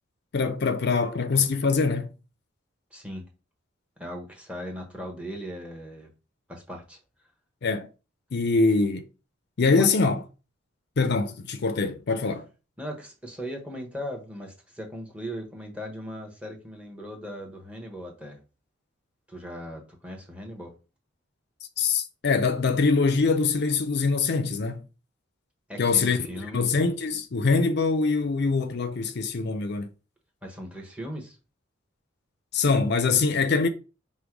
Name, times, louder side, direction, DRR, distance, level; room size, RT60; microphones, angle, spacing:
voice 1, 0.3-2.1 7.6-7.9 8.3-9.1 9.6-10.2 11.0-12.4 21.8-24.8 25.8-29.9 32.5-33.7, left 4 dB, 55° left, 0.5 m, -24 dB
voice 2, 2.9-3.3 4.0-6.1 6.5-7.0 9.7-9.9 12.8-18.4 19.3-20.7 25.7-26.7 30.4-31.4, equal, 5° right, 1.0 m, -38 dB
5.2 x 2.2 x 4.5 m
head